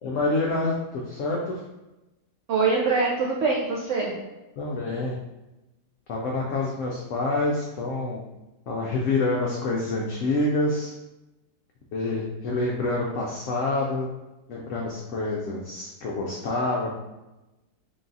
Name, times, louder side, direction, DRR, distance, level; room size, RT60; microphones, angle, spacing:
voice 1, 0.0-1.6 4.6-5.1 6.1-8.2 8.7-10.9 11.9-14.1 14.5-16.9, left 2 dB, 65° left, -2 dB, 0.8 m, -27 dB
voice 2, 2.5-4.1, right 4 dB, 65° right, -3 dB, 0.8 m, -23 dB
4.0 x 2.3 x 3.9 m, 1.0 s
omnidirectional pair, 1.7 m